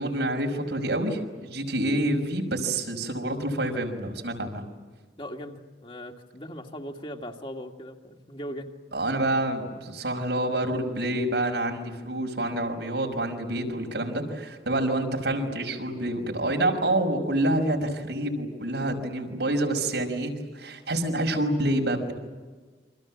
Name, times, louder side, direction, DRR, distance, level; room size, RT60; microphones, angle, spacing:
voice 1, 0.0-4.6 8.9-22.1, right 1 dB, 90° right, 2 dB, 5.8 m, -27 dB
voice 2, 5.2-8.7, equal, 30° left, 2 dB, 2.3 m, -39 dB
28.5 x 25.5 x 7.5 m, 1.4 s
head